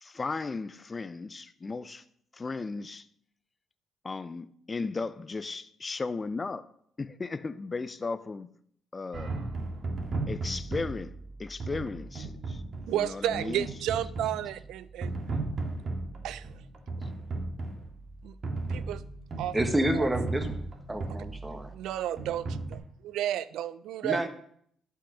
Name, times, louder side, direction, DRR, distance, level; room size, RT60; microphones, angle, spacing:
voice 1, 0.0-2.0 2.3-3.0 4.0-6.7 7.0-8.5 8.9-9.3 10.3-11.1 11.4-12.6 12.9-13.7, left 4 dB, 30° left, 0.6 m, -35 dB
sound 1, 9.1-22.8, right 3 dB, 50° right, 1.9 m, -36 dB
voice 2, 12.9-15.2 16.2-16.6 18.2-18.4 18.7-19.0 19.4-19.6 19.9-20.1 21.1-21.2 21.7-24.3, right 11 dB, 85° right, 0.4 m, -32 dB
voice 3, 19.5-20.5 20.9-21.7 24.0-24.3, right 1 dB, 15° right, 1.5 m, -28 dB
12.0 x 5.8 x 6.4 m
cardioid pair, 90°, 0 cm